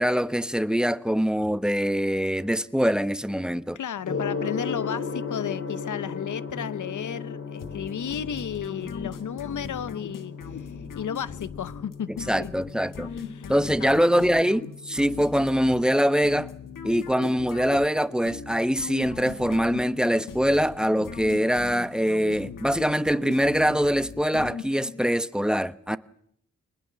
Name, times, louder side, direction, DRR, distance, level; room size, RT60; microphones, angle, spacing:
voice 1, 0.0-3.8 12.3-13.1 13.5-16.5 16.8-26.0, equal, ahead, 1.1 m, -23 dB
voice 2, 3.7-12.5 13.1-13.5 13.8-14.4, left 8 dB, 70° left, 0.9 m, -34 dB
Gong, 4.0-23.1, left 5 dB, 45° left, 3.7 m, -38 dB
sound 1, 7.6-25.1, left 6 dB, 85° left, 1.7 m, -39 dB
26.0 x 20.0 x 7.4 m
cardioid pair, 55°, 31 cm